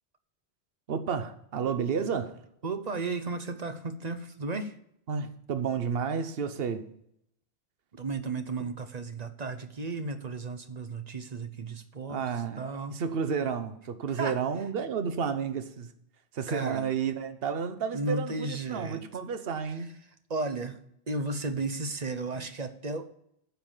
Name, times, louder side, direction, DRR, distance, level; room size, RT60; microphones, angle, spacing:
voice 1, 0.9-2.4 5.1-6.8 12.1-12.6 12.9-15.9 16.3-20.0, right 6 dB, 65° right, 1.1 m, -31 dB
voice 2, 2.6-4.8 7.9-12.3 12.6-13.0 14.1-14.4 16.5-16.8 17.9-19.0 20.3-20.8 21.1-23.2, right 3 dB, 45° right, 0.9 m, -34 dB
9.9 x 5.8 x 7.3 m
omnidirectional pair, 1.1 m